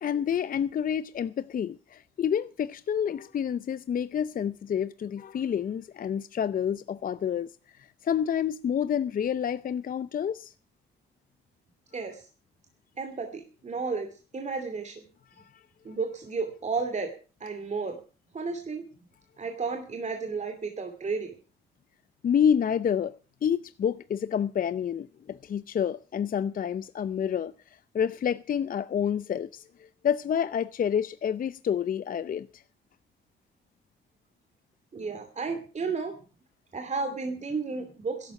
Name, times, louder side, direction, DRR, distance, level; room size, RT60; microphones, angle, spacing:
voice 1, 0.0-7.5 7.8-10.5 22.2-23.2 23.4-32.6, left 8 dB, 45° left, 0.6 m, -28 dB
voice 2, 11.9-12.3 13.0-15.0 15.8-17.1 17.4-18.0 18.3-18.8 19.4-21.3 34.9-36.1 36.7-38.3, right 4 dB, 35° right, 2.6 m, -33 dB
13.5 x 11.5 x 5.9 m
cardioid pair, 90°, 20 cm